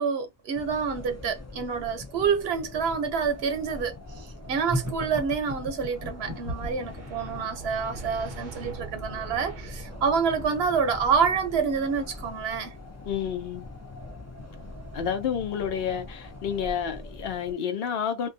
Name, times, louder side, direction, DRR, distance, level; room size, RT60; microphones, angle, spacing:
voice 1, 0.0-12.7, right 6 dB, 80° right, 0.9 m, -27 dB
sound 1, 0.5-17.5, left 2 dB, 25° left, 0.4 m, -42 dB
sound 2, 4.7-6.9, equal, 20° right, 0.8 m, -33 dB
sound 3, 5.8-11.3, right 4 dB, 55° right, 0.7 m, -44 dB
voice 2, 13.1-13.7 14.9-18.3, left 8 dB, 75° left, 0.8 m, -30 dB
2.3 x 2.2 x 2.6 m
omnidirectional pair, 1.0 m